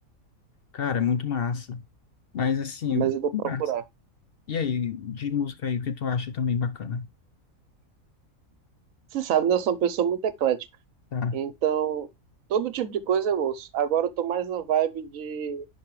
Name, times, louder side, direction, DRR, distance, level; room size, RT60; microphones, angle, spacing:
voice 1, 0.7-1.8 2.3-3.6 4.5-7.1 11.1-11.4, left 6 dB, 55° left, 0.7 m, -28 dB
voice 2, 2.9-3.3 3.6-3.8 9.1-10.7 11.3-12.1 12.5-15.7, right 9 dB, 75° right, 1.1 m, -26 dB
10.5 x 4.5 x 3.1 m
omnidirectional pair, 1.5 m